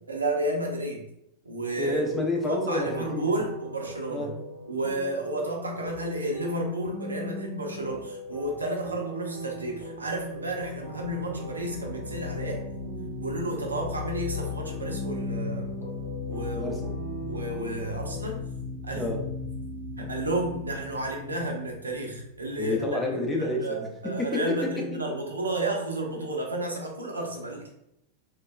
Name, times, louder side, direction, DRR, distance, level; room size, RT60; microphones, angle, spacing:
voice 1, 0.1-1.0 1.4-2.1 2.5-4.3 4.7-12.6 13.2-15.7 16.3-16.7 17.2-18.4 18.8-19.1 20.0-22.8 23.4-27.7, right 1 dB, 80° right, 1 dB, 0.5 m, -32 dB
sound 1, 1.6-18.3, right 1 dB, 45° left, 1.1 m, -41 dB
voice 2, 1.8-3.5 4.1-4.4 16.6-16.9 19.0-19.3 22.6-25.1, left 1 dB, 15° left, 1 dB, 0.5 m, -29 dB
sound 2, 9.8-23.0, left 4 dB, 35° right, 1.0 m, -37 dB
3.1 x 2.2 x 2.3 m, 0.79 s
figure-of-eight pair, 90°, 0 cm